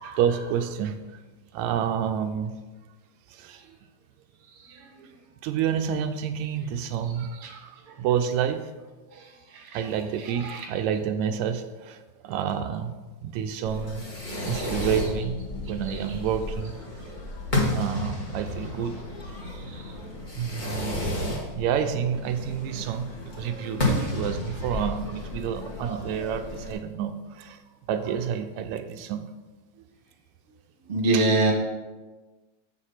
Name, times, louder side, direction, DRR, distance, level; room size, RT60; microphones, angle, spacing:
voice 1, 0.0-1.2 1.5-2.5 3.3-3.8 5.0-5.1 5.4-8.7 9.7-13.0 13.2-14.0 14.5-15.4 15.7-16.7 17.7-19.0 19.3-19.4 20.3-27.6 27.9-29.3 31.1-31.3, right 8 dB, 80° right, 8 dB, 1.9 m, -29 dB
Fireworks, 13.6-26.7, left 1 dB, 30° left, 0.9 m, -32 dB
voice 2, 30.9-31.5, right 2 dB, 30° right, 0 dB, 1.0 m, -22 dB
7.5 x 6.4 x 5.7 m, 1.2 s
omnidirectional pair, 3.3 m